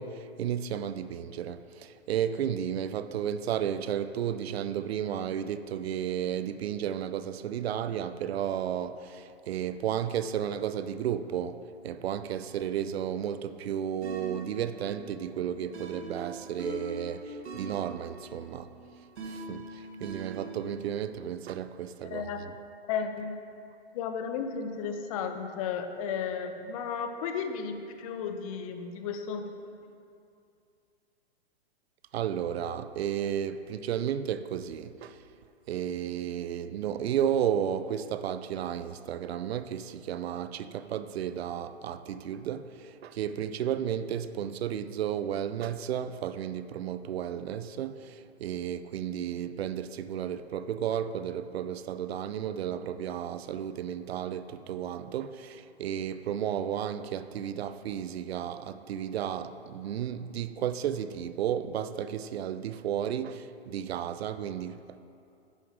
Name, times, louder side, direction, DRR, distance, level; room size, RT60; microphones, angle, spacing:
voice 1, 0.0-18.7 19.2-22.5 32.1-35.2 35.7-65.0, right 9 dB, 70° right, 0.5 m, -33 dB
sound 1, 14.0-20.9, right 2 dB, 85° right, 1.3 m, -42 dB
voice 2, 22.0-22.4 22.9-23.4 23.9-29.5, left 6 dB, 35° left, 0.6 m, -34 dB
9.8 x 5.3 x 4.8 m
hypercardioid pair, 140°, 32 cm